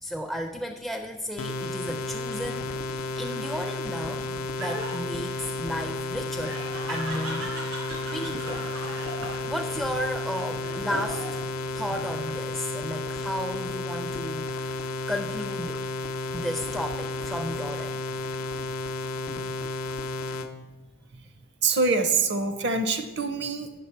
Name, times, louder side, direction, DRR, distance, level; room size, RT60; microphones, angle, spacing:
voice 1, 0.0-4.3 4.6-6.6 6.9-7.6 8.1-8.6 9.2-11.4 11.7-15.8 16.3-18.0, equal, ahead, 4 dB, 0.4 m, -34 dB
sound 1, 1.4-20.5, left 2 dB, 80° left, 0.6 m, -32 dB
Laughter, 3.1-11.5 11.9-12.6, right 1 dB, 80° right, 3.0 m, -39 dB
voice 2, 21.6-23.7, right 4 dB, 55° right, 8 dB, 0.7 m, -25 dB
8.4 x 6.2 x 4.5 m, 1.2 s
head